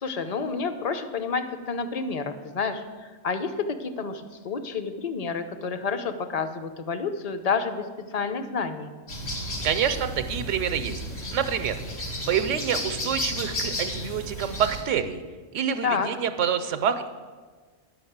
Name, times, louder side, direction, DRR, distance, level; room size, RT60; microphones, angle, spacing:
voice 1, 0.0-2.8 3.2-8.9 15.8-16.1, left 5 dB, 40° left, 9 dB, 0.6 m, -29 dB
sound 1, 9.1-14.8, equal, 85° left, 2.4 m, -33 dB
voice 2, 9.6-11.0 11.3-11.7 12.3-15.2 15.5-17.1, right 8 dB, 85° right, 8 dB, 0.9 m, -27 dB
10.5 x 5.3 x 7.9 m, 1.4 s
omnidirectional pair, 1.3 m